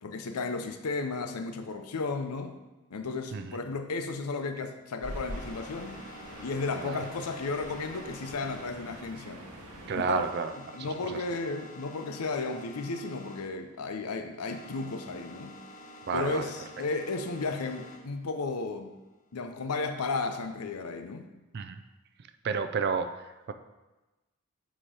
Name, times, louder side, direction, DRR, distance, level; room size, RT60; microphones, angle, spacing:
voice 1, 0.0-2.5 2.9-6.0 6.4-9.4 9.9-10.2 10.7-15.6 16.1-18.9 19.3-21.3, left 3 dB, 85° left, 7 dB, 0.6 m, -34 dB
sound 1, 5.0-10.3, right 1 dB, 90° right, 1.3 m, -44 dB
sound 2, 5.3-13.5 13.7-18.0 18.5-20.3, left 1 dB, 35° left, 0.9 m, -49 dB
voice 2, 9.9-11.2 16.1-16.5 21.5-21.8 22.4-23.5, right 5 dB, 45° right, 8 dB, 0.3 m, -31 dB
7.6 x 3.0 x 4.8 m, 1.1 s
head